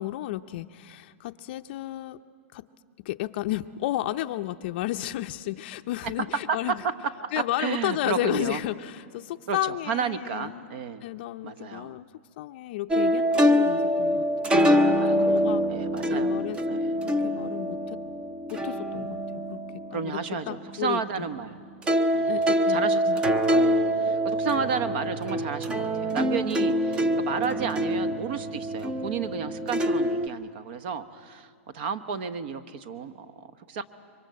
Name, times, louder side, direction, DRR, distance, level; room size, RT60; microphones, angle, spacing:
voice 1, 0.0-2.2 2.5-2.6 3.0-6.8 7.3-10.6 11.0-12.1 12.4-14.2 14.5-14.8 15.1-15.6 16.1-18.0 18.5-19.2 19.5-19.6 19.9-20.2 20.5-21.3 22.3-23.2, left 15 dB, 45° left, 9 dB, 0.5 m, -32 dB
voice 2, 6.0-8.6 9.5-11.0 11.4-12.0 15.0-17.1 19.9-21.6 22.1-33.8, right 6 dB, 50° right, 13 dB, 1.2 m, -32 dB
sound 1, 12.9-21.5 21.8-30.3, equal, 10° right, 0.7 m, -25 dB
27.0 x 23.5 x 7.7 m, 2.1 s
hypercardioid pair, 155°, 8 cm